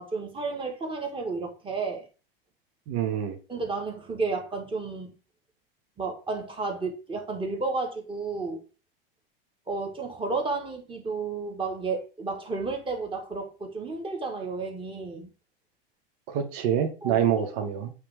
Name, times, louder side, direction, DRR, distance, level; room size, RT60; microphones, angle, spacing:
voice 1, 0.0-2.0 3.5-5.1 6.0-8.6 9.7-15.3 17.0-17.2, right 3 dB, 15° right, 1.7 m, -32 dB
voice 2, 2.9-3.4 16.3-17.9, right 9 dB, 55° right, 1.1 m, -26 dB
8.3 x 3.3 x 3.6 m
supercardioid pair, 120°, 29 cm